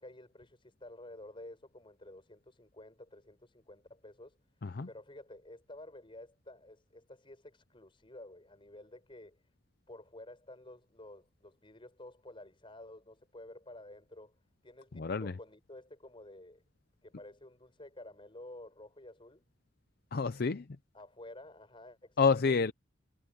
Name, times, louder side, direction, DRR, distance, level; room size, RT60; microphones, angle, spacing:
voice 1, 0.0-4.4 4.9-9.4 9.9-14.3 14.6-16.6 17.0-19.4 20.9-22.6, left 1 dB, 25° left, 5.6 m, -51 dB
voice 2, 14.9-15.3 20.1-20.7 22.2-22.7, left 5 dB, 55° left, 0.6 m, -28 dB
head